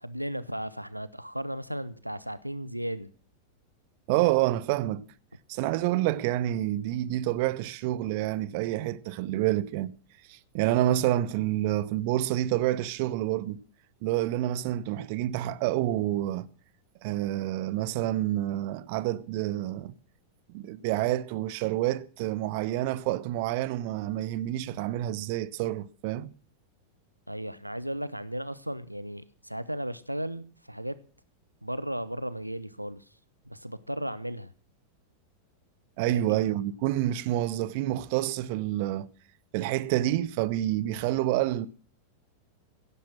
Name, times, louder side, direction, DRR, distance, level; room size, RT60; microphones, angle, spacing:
voice 1, 0.0-3.1 27.3-31.0 31.6-33.1 33.4-34.5 36.1-36.2, equal, 90° right, 0.7 m, -35 dB
voice 2, 4.1-5.0 5.5-9.9 10.3-13.6 14.0-16.5 17.0-19.9 20.5-26.3 36.0-39.1 39.5-41.7, right 14 dB, 45° right, 0.8 m, -28 dB
16.5 x 10.5 x 6.1 m
figure-of-eight pair, 90°, 0 cm